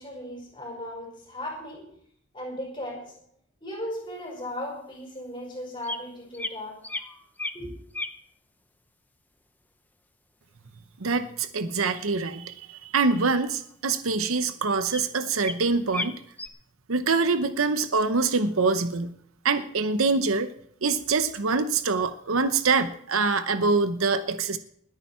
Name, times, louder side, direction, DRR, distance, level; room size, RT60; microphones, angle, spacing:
voice 1, 0.0-1.9 2.3-3.2 3.6-6.8 7.5-7.8, left 1 dB, 25° left, -1 dB, 5.2 m, -36 dB
sound 1, 4.4-4.5 5.8-6.0 6.3-6.6 6.8-7.6 7.9-8.2 13.1-13.3 13.6-13.7 14.4-14.5 14.9-15.0 15.4-15.6 15.9-16.5, left 2 dB, 10° left, 0.6 m, -34 dB
voice 2, 11.0-16.2 16.9-19.1 19.4-20.5 20.8-24.6, right 4 dB, 85° right, 10 dB, 0.9 m, -25 dB
20.5 x 9.0 x 4.4 m, 0.65 s
head